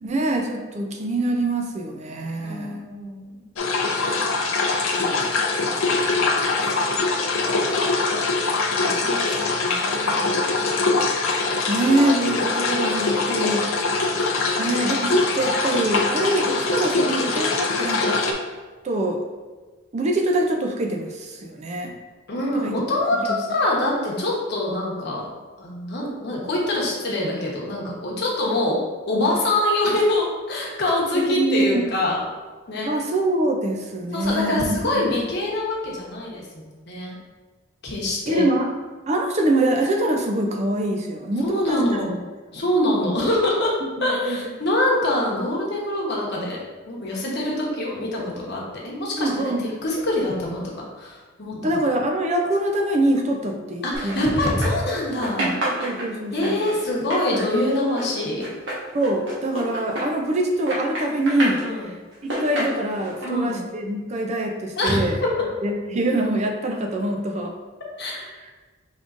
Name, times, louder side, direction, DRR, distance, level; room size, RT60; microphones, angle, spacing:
voice 1, 0.0-2.8 5.0-5.3 11.7-13.7 14.6-18.4 18.8-19.2 19.9-21.9 22.6-22.8 31.1-31.8 32.8-34.8 38.3-38.7 39.1-42.0 44.0-44.4 49.1-49.7 51.6-54.3 55.4-56.7 58.9-61.9 62.2-65.2 65.6-67.5, right 1 dB, 35° right, 2 dB, 0.4 m, -24 dB
voice 2, 2.4-3.4 8.7-10.8 22.3-25.3 25.6-28.8 29.1-32.2 32.7-32.9 34.1-37.2 37.8-38.4 41.4-42.2 42.5-49.5 49.8-51.6 53.8-55.5 56.3-58.5 61.6-61.9 63.2-63.6 64.8-65.3 68.0-68.3, left 1 dB, 55° left, -3 dB, 1.0 m, -25 dB
sound 1, 3.6-18.3, left 3 dB, 80° left, 0.6 m, -23 dB
sound 2, 53.9-54.9 55.2-60.4 60.7-61.6 62.1-63.3, right 1 dB, 60° right, 1.3 m, -29 dB
5.3 x 3.6 x 2.5 m, 1.3 s
head